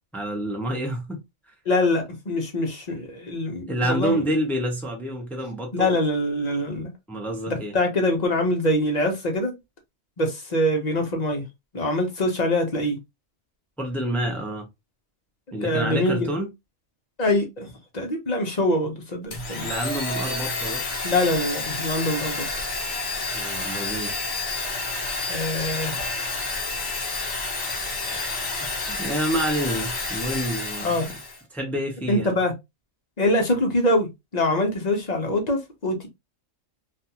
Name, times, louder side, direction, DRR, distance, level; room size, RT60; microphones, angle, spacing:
voice 1, 0.1-1.2 3.7-5.9 7.1-7.7 13.8-14.7 15.5-16.5 19.6-20.8 23.3-24.1 28.6-31.1 31.5-32.4, right 1 dB, ahead, 0.4 m, -28 dB
voice 2, 1.7-4.2 5.7-6.9 7.5-9.5 10.2-11.4 11.7-13.0 15.5-16.3 17.2-17.7 17.9-19.7 21.0-22.4 25.3-26.0 28.0-28.5 30.8-31.1 32.1-32.5 33.2-36.1, left 1 dB, 40° left, 0.6 m, -24 dB
Domestic sounds home sounds, 19.3-31.4, left 3 dB, 60° left, 1.3 m, -29 dB
2.5 x 2.4 x 2.7 m
omnidirectional pair, 1.4 m